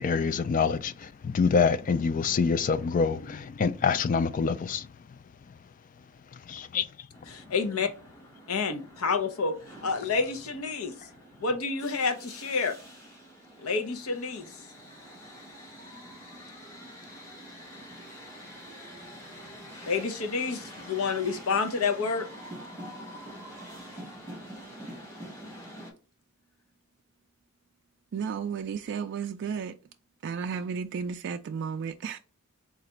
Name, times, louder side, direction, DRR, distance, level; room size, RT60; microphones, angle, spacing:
voice 1, 0.0-4.9 6.3-6.9, left 5 dB, 40° left, 0.3 m, -26 dB
sound 1, 7.1-25.9, equal, 15° left, 1.3 m, -46 dB
voice 2, 7.3-7.9 8.5-9.6 9.8-10.9 11.4-12.8 13.6-14.5 19.9-22.3, left 4 dB, 80° left, 0.7 m, -29 dB
voice 3, 28.1-29.8 30.2-32.2, right 6 dB, 55° right, 0.3 m, -33 dB
3.9 x 2.4 x 4.3 m
head